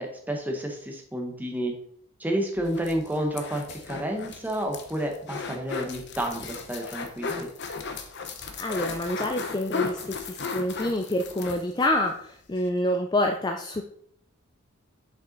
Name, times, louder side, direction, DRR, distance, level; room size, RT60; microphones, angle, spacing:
voice 1, 0.0-1.7 2.2-7.5, right 1 dB, 10° right, 2 dB, 1.0 m, -30 dB
sound 1, 2.6-11.9 12.2-12.3 12.6-12.7, left 5 dB, 50° left, 0.8 m, -36 dB
voice 2, 8.6-13.8, left 1 dB, 20° left, 4 dB, 0.4 m, -27 dB
6.7 x 5.4 x 3.9 m, 0.63 s
head